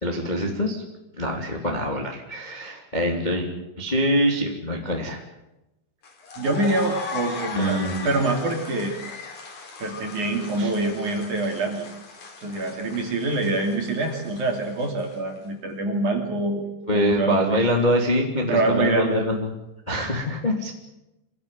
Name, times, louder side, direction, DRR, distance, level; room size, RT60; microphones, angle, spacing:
voice 1, 0.0-0.8 1.2-3.5 3.8-5.2 7.6-8.1 10.6-10.7 16.9-19.5 19.9-20.7, equal, 15° left, 1 dB, 1.8 m, -24 dB
sound 1, 6.0-15.4, left 4 dB, 40° left, 4.3 m, -38 dB
voice 2, 6.4-8.9 9.8-11.9 12.4-17.6 18.5-19.2 19.9-20.1, right 2 dB, 45° right, 2 dB, 3.8 m, -25 dB
25.0 x 16.0 x 9.2 m, 0.95 s
omnidirectional pair, 5.7 m